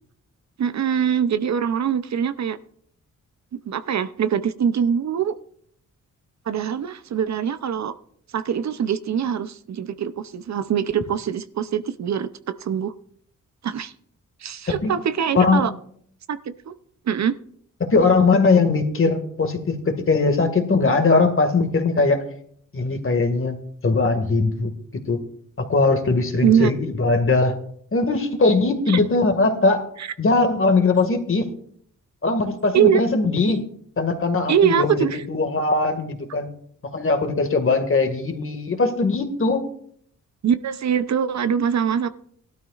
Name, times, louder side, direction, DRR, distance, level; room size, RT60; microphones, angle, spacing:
voice 1, 0.6-2.6 3.7-5.3 6.5-7.9 8.3-12.9 13.6-13.9 14.4-15.7 16.3-16.4 16.7-16.8 17.1-17.4 26.4-26.7 28.9-29.0 30.0-30.1 32.7-33.0 34.5-35.2 40.4-42.1, right 8 dB, 60° right, 13 dB, 0.7 m, -23 dB
voice 2, 15.3-15.7 17.8-22.2 22.7-23.5 23.8-24.7 25.1-25.2 25.6-27.5 27.9-29.8 30.2-31.5 32.2-33.7 34.0-36.5 36.9-39.6, left 3 dB, 45° left, 5 dB, 2.0 m, -20 dB
18.5 x 12.5 x 2.5 m, 0.63 s
cardioid pair, 75°, 31 cm